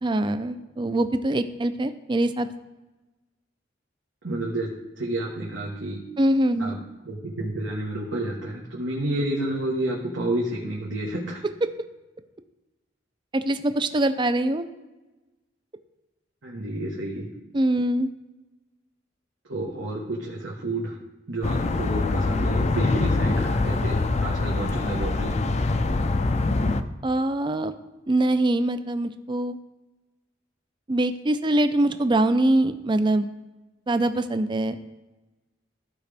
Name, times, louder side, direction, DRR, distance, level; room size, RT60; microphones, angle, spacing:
voice 1, 0.0-2.5 6.2-6.8 13.3-14.6 17.5-18.1 27.0-27.7 28.1-29.6 30.9-33.3 33.9-34.8, right 1 dB, 25° right, 10 dB, 0.5 m, -23 dB
voice 2, 4.2-4.7 5.0-6.0 6.6-6.8 7.0-11.4 16.4-17.3 19.5-21.0 21.3-25.3, right 1 dB, 80° right, -3 dB, 1.3 m, -30 dB
sound 1, 21.4-26.8, left 3 dB, 35° left, 0.5 m, -24 dB
14.5 x 5.0 x 3.4 m, 1.1 s
head